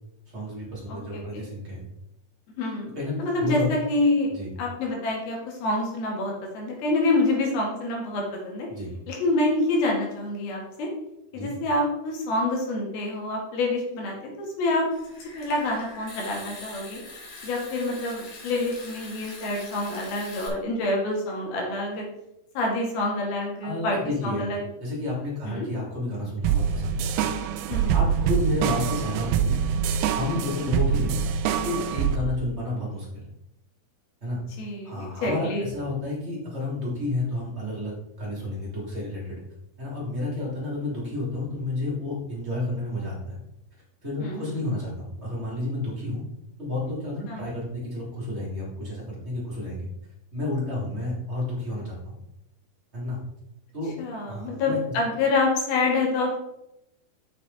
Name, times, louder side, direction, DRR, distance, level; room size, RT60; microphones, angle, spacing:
voice 1, 0.3-1.8 2.9-3.1 3.4-3.7 4.3-4.5 8.7-8.9 11.3-11.5 23.6-24.5 24.8-27.0 27.9-31.2 31.6-33.2 34.2-34.4 34.8-39.4 39.8-43.4 44.0-46.2 46.6-49.9 50.3-52.2 52.9-53.2 53.7-53.9 54.3-54.8, left 2 dB, 20° right, -5 dB, 3.0 m, -31 dB
voice 2, 0.9-1.4 2.6-2.9 3.2-4.3 4.6-8.7 9.1-10.9 11.3-14.9 15.4-17.0 17.4-22.0 22.6-24.0 24.2-24.6 25.5-25.7 27.7-28.0 34.6-35.7 44.2-44.6 47.3-47.5 54.0-56.4, left 2 dB, 80° left, -1 dB, 3.8 m, -27 dB
Water tap faucet / Sink (filling or washing) / Trickle dribble, 14.9-20.5, left 3 dB, 50° left, 2.1 m, -43 dB
sound 1, 26.4-32.2, right 8 dB, 85° right, 2.5 m, -25 dB
7.8 x 6.1 x 4.1 m, 0.84 s
omnidirectional pair, 4.3 m